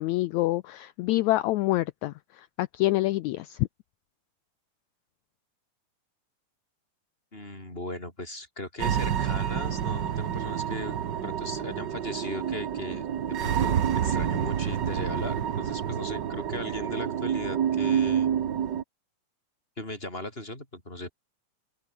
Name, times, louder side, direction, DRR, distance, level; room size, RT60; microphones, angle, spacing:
voice 1, 0.0-3.7, left 17 dB, 85° left, 1.6 m, -27 dB
voice 2, 7.3-18.3 19.8-21.1, left 1 dB, 15° left, 8.1 m, -37 dB
sound 1, 8.8-18.8, right 9 dB, 70° right, 1.0 m, -28 dB
omnidirectional pair, 3.8 m